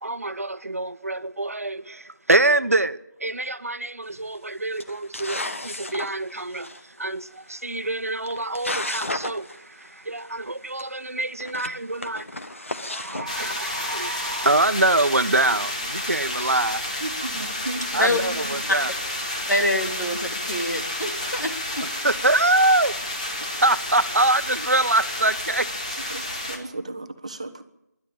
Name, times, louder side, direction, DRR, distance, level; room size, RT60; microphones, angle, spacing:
voice 1, 0.0-16.8 17.9-18.9 21.8-22.9 23.4-25.7, right 2 dB, 55° right, 1.1 m, -25 dB
sound 1, 4.1-4.4 4.8-6.8 7.8-7.9 8.2-9.6 9.8-9.9 10.2-10.3 10.8-10.9 11.3-14.1, left 2 dB, 45° left, 1.5 m, -33 dB
sound 2, 13.3-26.6, left 1 dB, 25° left, 2.3 m, -30 dB
voice 2, 17.0-18.3 26.1-27.6, right 2 dB, 20° right, 1.0 m, -35 dB
voice 3, 19.5-21.8, left 1 dB, 90° left, 3.5 m, -25 dB
25.0 x 12.0 x 8.8 m
figure-of-eight pair, 170°, 9 cm